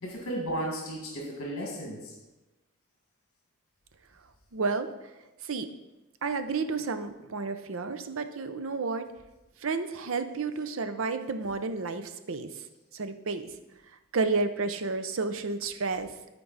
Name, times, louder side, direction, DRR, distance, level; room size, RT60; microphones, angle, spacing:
voice 1, 0.0-2.1, right 1 dB, 65° left, -1 dB, 1.8 m, -34 dB
voice 2, 4.5-4.9 5.4-5.7 6.2-9.1 9.6-12.6 12.9-13.5 14.1-16.1, right 4 dB, 65° right, 9 dB, 0.6 m, -31 dB
13.0 x 4.6 x 4.0 m, 1.1 s
head